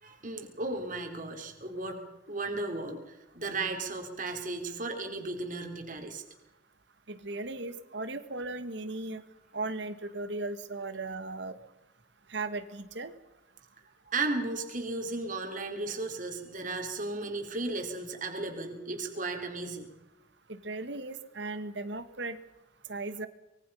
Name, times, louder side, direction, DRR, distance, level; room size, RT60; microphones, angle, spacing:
voice 1, 0.0-2.0 2.3-6.2 14.1-19.9, right 3 dB, 45° right, 3 dB, 3.8 m, -35 dB
voice 2, 7.1-9.2 9.5-11.6 12.3-13.1 20.5-22.4 22.9-23.3, right 2 dB, 65° right, 10 dB, 1.8 m, -37 dB
25.5 x 23.0 x 5.7 m, 0.95 s
head